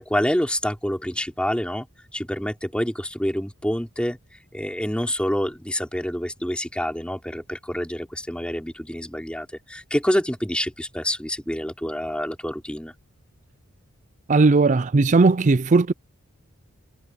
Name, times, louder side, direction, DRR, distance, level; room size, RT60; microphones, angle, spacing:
voice 1, 0.0-1.9 2.1-4.2 4.5-12.9, equal, 5° left, 3.6 m, -27 dB
voice 2, 14.3-15.9, right 3 dB, 35° right, 0.5 m, -17 dB
head